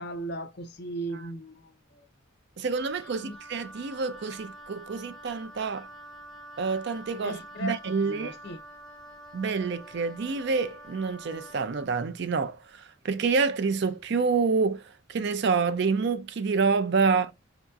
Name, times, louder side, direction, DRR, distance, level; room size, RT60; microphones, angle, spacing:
voice 1, 0.0-2.1 3.2-3.4 7.2-8.6, right 1 dB, 50° left, 0.6 m, -37 dB
voice 2, 2.6-5.9 6.6-8.3 9.3-17.3, right 4 dB, 55° right, 0.4 m, -27 dB
Wind instrument woodwind instrument, 2.7-11.9, right 1 dB, ahead, 0.7 m, -47 dB
4.6 x 2.8 x 2.3 m
head